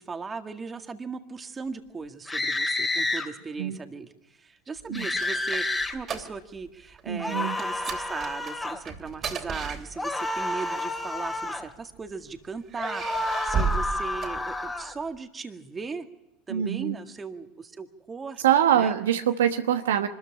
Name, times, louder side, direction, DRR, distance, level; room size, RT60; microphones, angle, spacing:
voice 1, 0.0-16.1 16.5-19.0, right 4 dB, 20° right, 7 dB, 1.9 m, -38 dB
sound 1, 2.3-3.3 4.9-5.9 7.2-8.8 10.0-11.7 12.8-14.9, left 2 dB, 15° left, 2.8 m, -30 dB
sound 2, 4.8-6.7 6.9-7.2 7.6-10.4 11.3-12.1 12.7-15.0, right 6 dB, 40° right, 3.0 m, -34 dB
voice 2, 7.1-7.5 16.5-17.0 18.4-20.1, right 10 dB, 75° right, 8 dB, 1.1 m, -24 dB
24.5 x 13.5 x 9.9 m, 0.90 s
hypercardioid pair, 80°, 0 cm